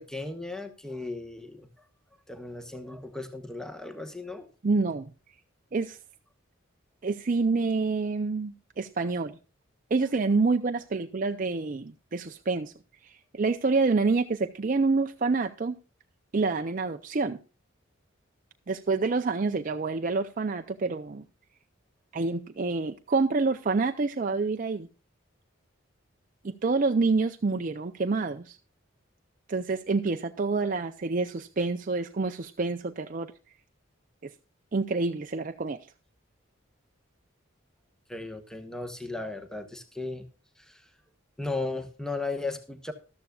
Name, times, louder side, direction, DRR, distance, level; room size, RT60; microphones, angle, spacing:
voice 1, 0.0-1.7 2.3-4.5 38.1-40.3 40.6-40.8 41.4-42.9, left 3 dB, 5° left, 1.1 m, -36 dB
voice 2, 4.6-5.1 5.7-6.0 7.0-9.4 9.9-12.7 13.0-15.8 16.3-17.4 18.7-21.2 22.1-24.9 26.4-28.6 29.5-33.3 34.7-35.8, right 3 dB, 40° right, 0.5 m, -27 dB
13.5 x 13.0 x 2.4 m
head